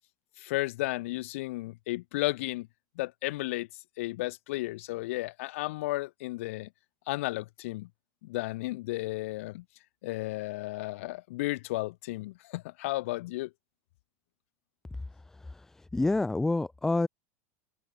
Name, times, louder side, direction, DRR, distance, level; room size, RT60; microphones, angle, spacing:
voice 1, 0.4-2.7 3.0-3.7 4.0-6.7 7.1-7.9 8.2-9.6 10.0-13.5, left 19 dB, 60° left, 6.6 m, -33 dB
voice 2, 15.1-17.1, left 2 dB, 5° left, 5.3 m, -29 dB
open air
supercardioid pair, 180°, 8 cm